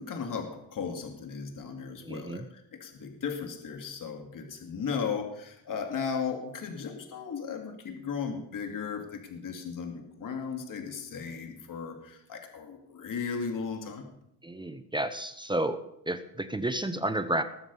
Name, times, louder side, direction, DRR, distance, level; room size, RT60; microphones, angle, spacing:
voice 1, 0.0-14.1, left 6 dB, 50° left, 4 dB, 2.5 m, -36 dB
voice 2, 2.0-2.5 14.4-17.4, right 1 dB, 10° right, 9 dB, 0.9 m, -31 dB
20.5 x 7.3 x 5.5 m, 0.77 s
cardioid pair, 105°, 42 cm